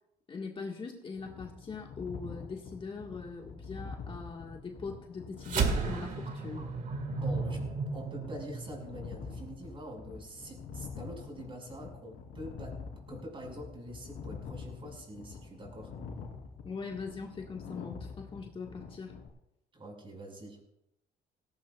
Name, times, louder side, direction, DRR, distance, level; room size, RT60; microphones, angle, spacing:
voice 1, 0.3-6.6 16.6-19.2, left 4 dB, 30° left, 1 dB, 1.7 m, -41 dB
sound 1, 1.1-19.3, left 5 dB, 75° left, 3.3 m, -45 dB
sound 2, 5.4-10.1, right 4 dB, 50° right, 2.0 m, -34 dB
voice 2, 7.2-7.6 7.9-12.8 13.1-15.9 19.7-20.7, right 1 dB, 30° right, 1 dB, 5.6 m, -45 dB
18.0 x 16.0 x 2.4 m, 0.81 s
cardioid pair, 110°, 17 cm